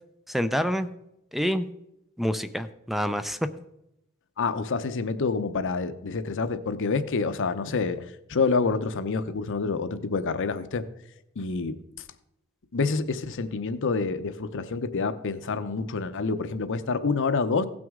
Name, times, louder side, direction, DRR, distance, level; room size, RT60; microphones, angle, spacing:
voice 1, 0.3-0.9 1.3-1.7 2.2-3.4, equal, ahead, 11 dB, 0.4 m, -27 dB
voice 2, 4.4-10.9 11.4-11.8 12.7-17.7, left 4 dB, 60° left, 11 dB, 0.7 m, -27 dB
16.5 x 6.1 x 3.7 m, 0.84 s
head